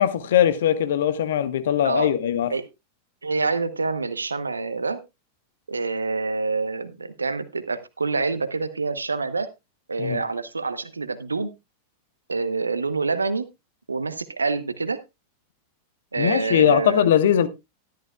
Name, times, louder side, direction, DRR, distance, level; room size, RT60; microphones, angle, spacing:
voice 1, 0.0-2.5 10.0-10.2 16.2-17.5, left 10 dB, 60° left, 1.1 m, -20 dB
voice 2, 3.2-5.0 5.7-9.5 9.9-11.5 12.3-13.5 13.9-15.0 16.1-17.1, right 4 dB, 80° right, 1.0 m, -26 dB
13.0 x 11.5 x 2.3 m
figure-of-eight pair, 90°, 0 cm